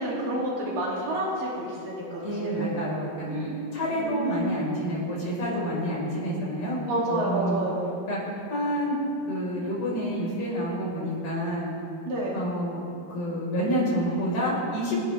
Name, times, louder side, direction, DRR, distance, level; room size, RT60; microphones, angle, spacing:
voice 1, 0.0-2.8 3.3-3.6 3.9-4.6 6.9-7.9 12.1-12.4, right 1 dB, 70° right, -5 dB, 4.5 m, -30 dB
voice 2, 2.2-3.4 3.7-6.8 7.1-7.7 8.1-9.0 9.3-11.7 12.3-12.8 13.1-15.0, equal, 60° left, -6 dB, 6.2 m, -28 dB
27.5 x 11.0 x 3.5 m, 2.6 s
omnidirectional pair, 4.1 m